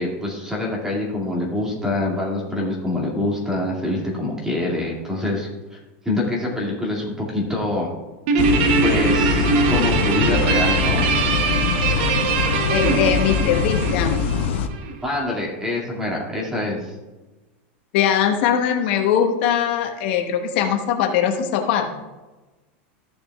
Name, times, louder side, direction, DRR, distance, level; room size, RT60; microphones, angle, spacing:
voice 1, 0.0-5.8 6.0-7.9 8.8-11.1 15.0-16.9, left 2 dB, 10° right, -2 dB, 2.2 m, -25 dB
Guitar, 8.3-14.9, right 5 dB, 60° right, 0.9 m, -22 dB
sound 1, 8.4-14.7, left 7 dB, 75° left, 0.7 m, -23 dB
voice 2, 12.7-14.2 17.9-22.0, left 8 dB, 60° left, 4 dB, 1.0 m, -21 dB
14.0 x 6.7 x 2.4 m, 1.2 s
supercardioid pair, 140°, 6 cm